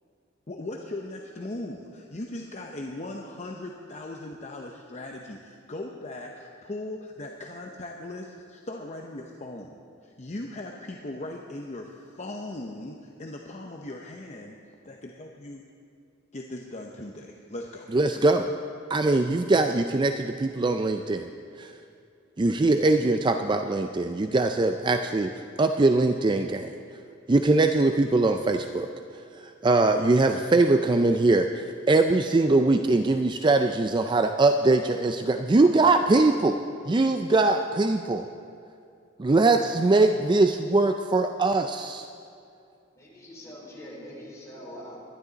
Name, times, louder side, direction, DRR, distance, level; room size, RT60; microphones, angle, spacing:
voice 1, 0.5-14.6 14.8-15.6 16.3-18.0, left 2 dB, 35° left, 1 dB, 0.8 m, -39 dB
voice 2, 17.9-18.5 18.9-21.3 21.6-21.7 22.4-25.3 25.6-26.7 27.3-28.9 29.6-36.6 36.8-38.3 39.2-42.1, right 2 dB, 25° right, 7 dB, 0.4 m, -22 dB
voice 3, 43.0-45.0, equal, 15° left, -5 dB, 3.9 m, -43 dB
21.5 x 11.5 x 4.0 m, 2.5 s
head